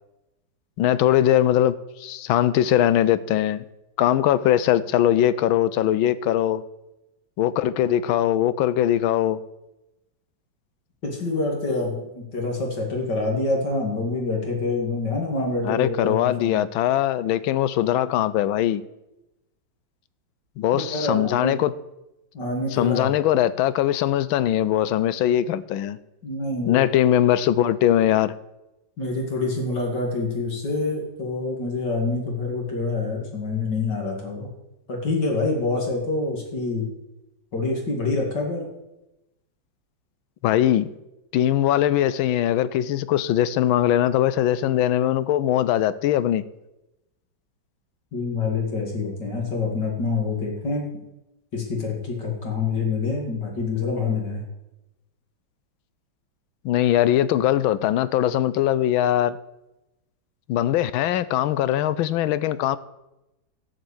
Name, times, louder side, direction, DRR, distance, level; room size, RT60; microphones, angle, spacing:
voice 1, 0.8-3.6 4.0-6.6 7.4-9.4 15.6-18.8 20.6-21.7 22.7-26.0 26.7-28.3 40.4-40.9 41.3-46.4 56.6-59.4 60.5-62.8, left 12 dB, 85° left, 1.4 m, -21 dB
voice 2, 11.0-16.6 20.7-21.6 22.3-23.1 26.2-26.8 29.0-34.5 34.9-36.9 37.5-38.6 48.1-50.9 51.5-54.4, left 3 dB, 60° left, 2.9 m, -26 dB
13.5 x 5.4 x 8.6 m
omnidirectional pair, 2.1 m